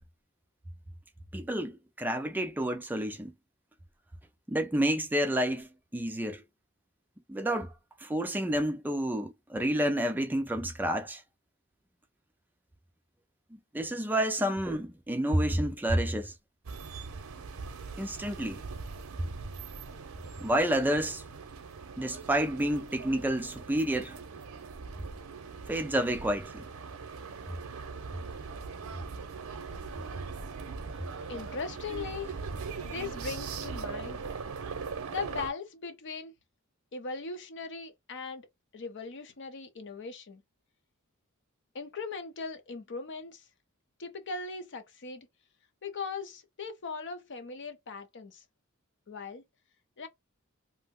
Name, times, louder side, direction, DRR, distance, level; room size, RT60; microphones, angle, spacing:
voice 1, 1.3-3.3 4.5-6.4 7.3-7.7 8.0-11.2 13.7-16.3 18.0-18.6 20.4-21.2 22.0-24.2 25.7-26.7, right 1 dB, 10° right, 0.3 m, -29 dB
sound 1, 16.6-35.5, right 5 dB, 80° right, 0.6 m, -41 dB
voice 2, 31.1-32.3 32.8-34.2 35.1-36.3 36.9-38.5 38.7-40.4 41.7-43.5 44.0-45.3 45.8-48.4 49.1-49.4 50.0-50.1, left 4 dB, 60° left, 0.6 m, -39 dB
2.7 x 2.0 x 3.6 m
head